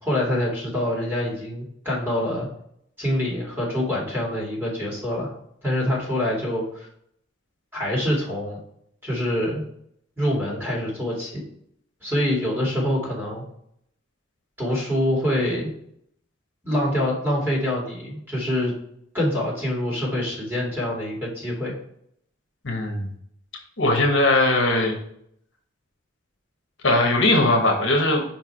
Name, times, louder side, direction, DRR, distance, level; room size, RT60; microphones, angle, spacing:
voice 1, 0.0-2.5 3.0-5.3 5.6-6.9 7.7-8.6 9.0-9.6 10.2-11.4 12.0-13.4 14.6-15.7 16.6-18.7 19.1-21.7, left 1 dB, 10° right, -5 dB, 2.4 m, -25 dB
voice 2, 22.6-23.1 23.8-25.0 26.8-28.2, left 2 dB, 60° left, 1 dB, 1.3 m, -19 dB
5.4 x 4.6 x 4.5 m, 0.70 s
head